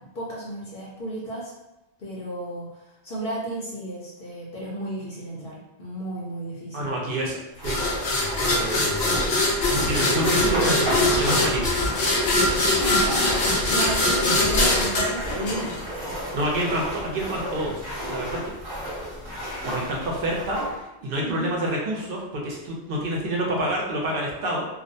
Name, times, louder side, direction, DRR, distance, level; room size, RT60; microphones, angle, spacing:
voice 1, 0.1-1.5 2.0-6.9 12.8-15.8 21.2-21.6, right 1 dB, 60° left, -5 dB, 0.8 m, -33 dB
voice 2, 6.7-7.4 7.6-7.9 8.4-9.2 9.7-11.7 13.6-13.7 16.3-17.8 18.1-18.4 19.6-24.7, right 1 dB, 60° right, -2 dB, 0.8 m, -28 dB
sound 1, 7.6-16.1, left 2 dB, 90° left, 0.9 m, -22 dB
sound 2, 7.6-20.7, equal, 25° right, 0.9 m, -33 dB
2.4 x 2.1 x 2.6 m, 0.98 s
omnidirectional pair, 1.1 m